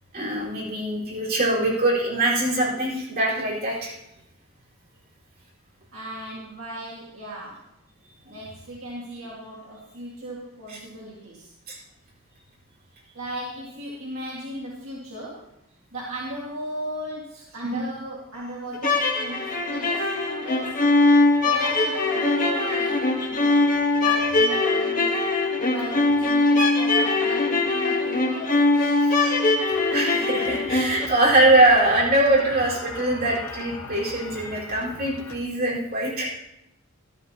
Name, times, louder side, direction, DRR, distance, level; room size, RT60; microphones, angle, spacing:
voice 1, 0.1-3.9 10.7-10.8 11.7-11.8 17.7-17.8 22.7-22.9 29.1-29.4 29.9-36.3, right 2 dB, 50° right, -6 dB, 4.5 m, -22 dB
voice 2, 5.9-7.6 8.2-11.5 13.1-15.4 15.9-20.8 21.4-25.3 25.7-29.0, equal, 70° right, -6 dB, 2.1 m, -36 dB
sound 1, 18.7-31.0, left 2 dB, 40° left, 1.3 m, -21 dB
sound 2, 30.3-35.4, left 2 dB, 75° left, 1.4 m, -40 dB
14.0 x 12.5 x 2.9 m, 0.85 s
head